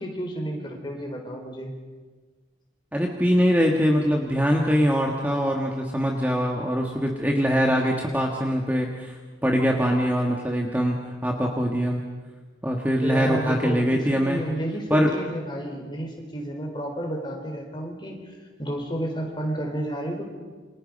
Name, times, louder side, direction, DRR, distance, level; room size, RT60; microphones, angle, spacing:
voice 1, 0.0-1.7 13.0-18.2 18.6-20.2, right 1 dB, 25° left, 1 dB, 4.6 m, -31 dB
voice 2, 2.9-9.2 9.4-11.0 11.2-12.0 12.6-14.4 14.9-15.1, equal, 10° right, 0 dB, 1.8 m, -23 dB
29.0 x 26.0 x 5.5 m, 1.4 s
head